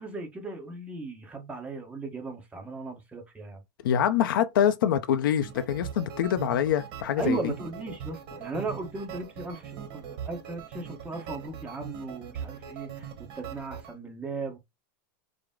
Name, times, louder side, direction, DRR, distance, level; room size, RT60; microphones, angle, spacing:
voice 1, 0.0-3.6 7.2-13.1 13.3-14.6, right 3 dB, 10° right, 1.2 m, -36 dB
voice 2, 3.8-7.5, left 9 dB, 85° left, 0.6 m, -25 dB
sound 1, 5.3-13.9, right 8 dB, 50° right, 1.2 m, -41 dB
4.8 x 2.1 x 3.7 m
supercardioid pair, 135°, 11 cm